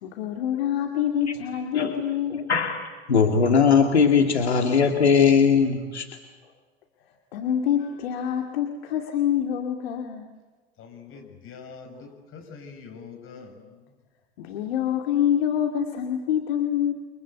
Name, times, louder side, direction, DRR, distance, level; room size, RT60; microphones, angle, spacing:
voice 1, 0.0-2.5 7.3-10.3 14.4-16.9, left 9 dB, 65° left, 3 dB, 2.4 m, -26 dB
voice 2, 2.3-6.1, left 6 dB, 80° left, 3 dB, 2.4 m, -20 dB
voice 3, 10.8-13.8, left 5 dB, 40° left, 5 dB, 6.4 m, -44 dB
29.5 x 24.5 x 8.2 m, 1.3 s
figure-of-eight pair, 80°, 32 cm